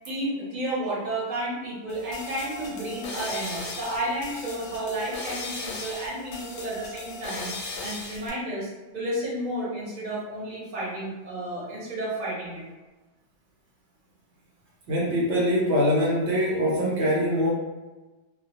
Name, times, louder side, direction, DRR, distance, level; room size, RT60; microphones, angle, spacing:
voice 1, 0.0-7.5 7.8-12.6, right 1 dB, 40° right, -6 dB, 0.8 m, -32 dB
sound 1, 1.9-8.3, left 3 dB, 60° left, 0.7 m, -37 dB
voice 2, 14.9-17.5, equal, 75° right, -5 dB, 1.0 m, -23 dB
2.1 x 2.1 x 2.8 m, 1.2 s
omnidirectional pair, 1.2 m